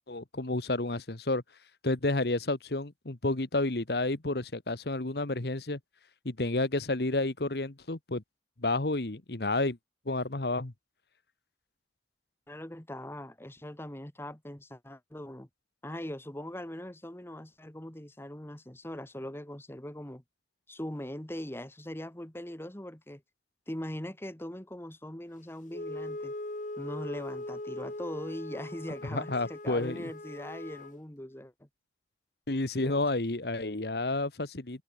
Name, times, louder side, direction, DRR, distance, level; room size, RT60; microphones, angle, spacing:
voice 1, 0.1-1.4 1.8-5.8 6.2-8.2 8.6-9.8 10.1-10.7 29.1-30.0 32.5-34.8, left 2 dB, 60° left, 1.4 m, -30 dB
voice 2, 12.5-15.5 15.8-20.2 20.7-23.2 23.7-26.3 26.8-31.7 32.8-33.0, left 1 dB, 15° left, 1.4 m, -41 dB
Wind instrument woodwind instrument, 25.7-31.0, left 1 dB, 45° left, 1.5 m, -40 dB
head